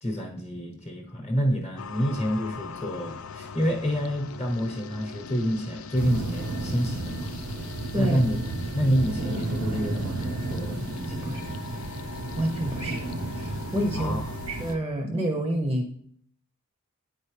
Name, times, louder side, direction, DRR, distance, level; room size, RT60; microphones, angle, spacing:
voice 1, 0.0-7.4 8.0-8.4 8.7-11.6 13.9-14.3, equal, 30° left, 1 dB, 1.0 m, -28 dB
sound 1, 1.8-14.8, left 6 dB, 65° left, 0.4 m, -42 dB
sound 2, 6.0-14.7, right 2 dB, 75° right, 0.6 m, -32 dB
voice 2, 11.1-11.4 12.4-13.0 13.3-14.2 14.5-15.9, equal, 15° right, 2 dB, 0.6 m, -28 dB
9.1 x 4.4 x 3.2 m, 0.64 s
head